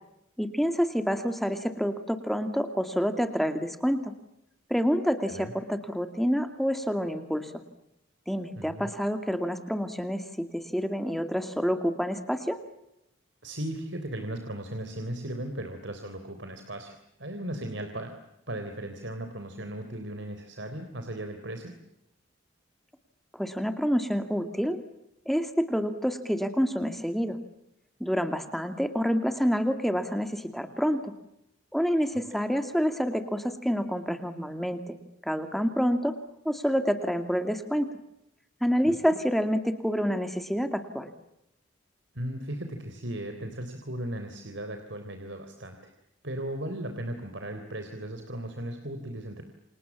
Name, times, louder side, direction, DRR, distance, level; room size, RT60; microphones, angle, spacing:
voice 1, 0.4-4.1 4.7-7.6 8.3-12.6 23.3-24.8 25.3-27.4 28.0-31.1 31.7-35.0 35.2-36.1 36.4-37.9 38.6-41.1, equal, ahead, 8 dB, 2.3 m, -28 dB
voice 2, 8.6-8.9 13.4-18.1 18.5-21.8 32.1-32.2 38.9-39.0 42.1-45.9 46.2-49.4, right 1 dB, 65° right, 6 dB, 3.7 m, -37 dB
29.5 x 27.0 x 7.3 m, 0.84 s
head